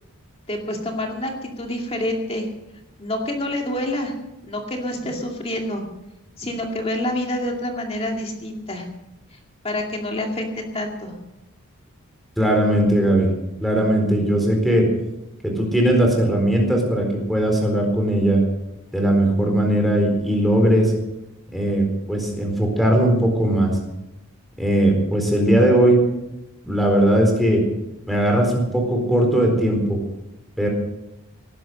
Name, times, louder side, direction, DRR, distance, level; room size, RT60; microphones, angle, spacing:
voice 1, 0.5-2.5 3.0-4.1 4.4-5.8 6.4-8.9 9.3-9.4 9.6-11.1, left 1 dB, 25° left, 1 dB, 2.4 m, -27 dB
voice 2, 12.4-13.3 13.6-14.8 15.4-18.4 18.9-20.9 21.5-23.8 24.6-26.0 26.7-27.6 28.1-30.0 30.6-30.7, right 1 dB, ahead, 1 dB, 4.2 m, -19 dB
18.5 x 11.0 x 6.5 m, 0.92 s
head